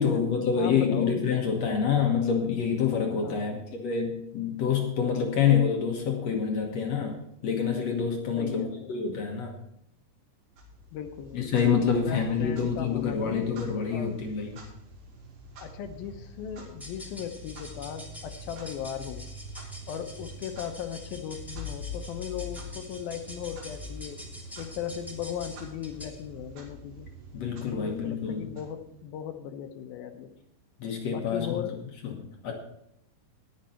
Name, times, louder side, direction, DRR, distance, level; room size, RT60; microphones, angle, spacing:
voice 1, 0.0-9.6 11.3-14.6 27.3-28.5 30.8-31.6 32.0-32.5, left 6 dB, 55° left, 1 dB, 2.0 m, -27 dB
voice 2, 0.6-1.3 3.2-3.7 8.4-9.0 10.9-14.2 15.6-19.3 19.9-24.2 24.6-27.1 27.7-30.3 31.1-31.8, left 9 dB, 75° left, 7 dB, 2.6 m, -37 dB
Clock, 10.5-29.3, left 1 dB, 75° right, 4.2 m, -45 dB
sound 1, 16.8-26.3, left 1 dB, ahead, 1.9 m, -47 dB
19.5 x 6.7 x 4.4 m, 0.77 s
omnidirectional pair, 4.4 m